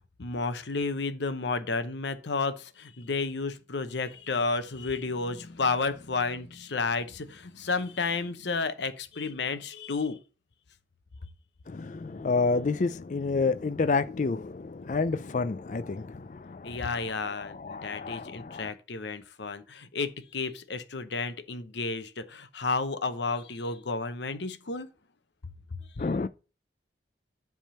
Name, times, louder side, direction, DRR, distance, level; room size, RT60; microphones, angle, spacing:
voice 1, 0.2-10.2 16.6-24.9 26.0-26.1, left 4 dB, 75° left, 0.8 m, -32 dB
voice 2, 11.7-16.8 17.4-18.7 26.0-26.3, left 4 dB, 40° left, 0.4 m, -29 dB
10.0 x 3.6 x 5.6 m
head